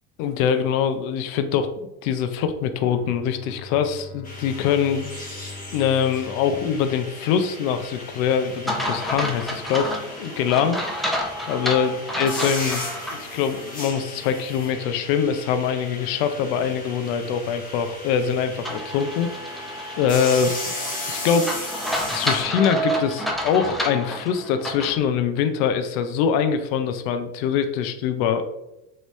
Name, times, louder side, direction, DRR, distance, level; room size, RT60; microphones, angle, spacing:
voice 1, 0.2-1.7 2.0-5.1 5.7-9.9 10.2-10.8 11.5-12.8 13.1-19.3 20.0-20.5 21.1-21.5 22.1-28.4, left 7 dB, 75° left, 9 dB, 0.5 m, -23 dB
Bowed string instrument, 2.8-7.8, left 3 dB, 40° left, 0.8 m, -43 dB
sound 1, 4.2-22.4, left 2 dB, 20° left, 1.1 m, -36 dB
sound 2, 8.7-13.2 13.6-13.7 18.7-25.0, equal, ahead, 0.5 m, -29 dB
3.0 x 2.7 x 3.0 m, 0.90 s
supercardioid pair, 90°, 40 cm